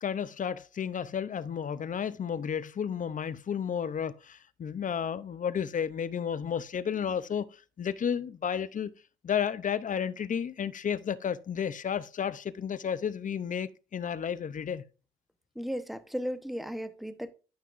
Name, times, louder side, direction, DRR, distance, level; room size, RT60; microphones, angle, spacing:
voice 1, 0.0-8.9 9.2-14.9, left 8 dB, 40° left, 0.7 m, -32 dB
voice 2, 15.5-17.3, equal, ahead, 1.0 m, -35 dB
12.5 x 5.7 x 2.6 m
cardioid pair, 90°, 20 cm